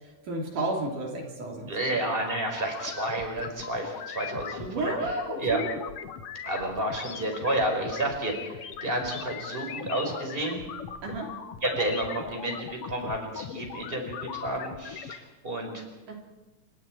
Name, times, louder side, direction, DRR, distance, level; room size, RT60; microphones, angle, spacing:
voice 1, 0.0-1.9 4.6-5.7 11.0-11.3 16.1-16.2, right 2 dB, 60° right, 0 dB, 4.5 m, -32 dB
voice 2, 1.6-5.6 6.4-10.6 11.6-15.8, right 1 dB, 15° right, 2 dB, 4.5 m, -31 dB
sound 1, 2.6-15.2, left 8 dB, 70° left, 1.4 m, -39 dB
29.0 x 24.5 x 4.6 m, 1.1 s
omnidirectional pair, 4.1 m